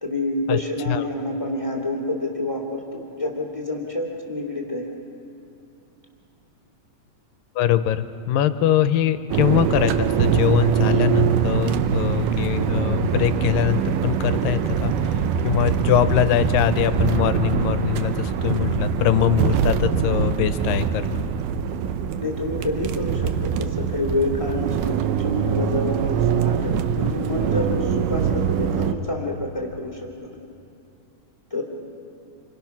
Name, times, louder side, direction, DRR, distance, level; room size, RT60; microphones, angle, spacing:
voice 1, 0.0-4.9 22.2-30.4 31.5-31.6, left 2 dB, 10° left, 1 dB, 2.0 m, -28 dB
voice 2, 7.6-21.2, left 11 dB, 85° left, 11 dB, 2.4 m, -22 dB
sound 1, 9.3-28.9, right 8 dB, 75° right, 2.3 m, -23 dB
29.0 x 24.5 x 5.9 m, 2.7 s
omnidirectional pair, 3.9 m